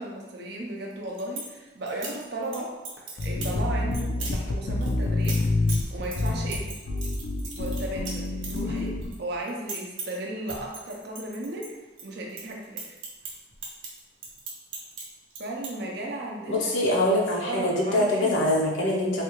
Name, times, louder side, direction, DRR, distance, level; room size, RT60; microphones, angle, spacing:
voice 1, 0.0-2.7 3.2-5.4 5.9-6.7 7.5-11.8 12.0-13.0 15.4-16.7 17.3-18.5, right 1 dB, 55° right, -1 dB, 0.6 m, -35 dB
sound 1, 0.9-1.5 1.9-2.6 2.8-3.6 3.9-4.4 4.8-9.2 9.4-10.2 10.5-12.0 12.3-15.0 15.3-15.7, right 4 dB, 90° right, 0.8 m, -38 dB
sound 2, 3.2-9.2, left 2 dB, 50° left, 0.4 m, -28 dB
voice 2, 16.5-19.2, left 1 dB, 80° left, -2 dB, 0.7 m, -24 dB
3.3 x 2.3 x 3.0 m, 1.1 s
head